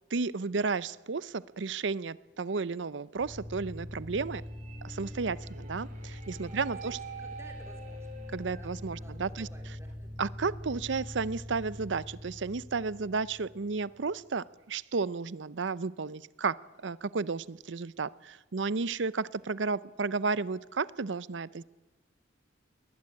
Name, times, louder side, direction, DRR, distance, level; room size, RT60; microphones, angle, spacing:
voice 1, 0.1-4.4 4.8-7.0 8.3-9.5 10.2-21.6, right 4 dB, 75° right, 19 dB, 0.6 m, -33 dB
sound 1, 3.1-14.1, equal, 45° right, 4.4 m, -43 dB
voice 2, 6.4-8.1 8.6-10.1, right 1 dB, 15° right, 3 dB, 3.5 m, -55 dB
21.5 x 19.5 x 8.6 m, 1.2 s
head